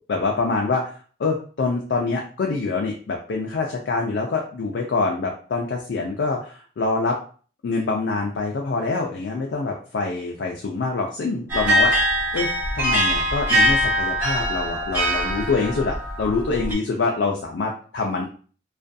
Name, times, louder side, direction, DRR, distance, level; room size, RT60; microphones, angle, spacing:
voice 1, 0.1-0.9 1.2-7.2 7.6-18.2, left 3 dB, 75° left, 0 dB, 0.4 m, -25 dB
sound 1, 11.5-16.7, equal, 15° right, 1.0 m, -22 dB
2.4 x 2.2 x 2.5 m, 0.41 s
head